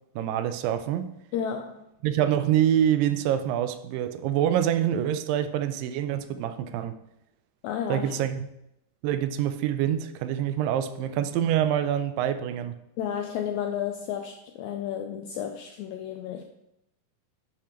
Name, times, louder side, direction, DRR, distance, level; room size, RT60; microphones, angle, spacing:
voice 1, 0.2-1.1 2.0-7.0 7.9-8.5 9.0-12.7, right 10 dB, 90° right, 10 dB, 2.3 m, -26 dB
voice 2, 1.3-1.8 7.6-8.1 13.0-16.4, left 9 dB, 85° left, 5 dB, 1.6 m, -32 dB
10.5 x 5.0 x 3.0 m, 0.83 s
omnidirectional pair, 3.8 m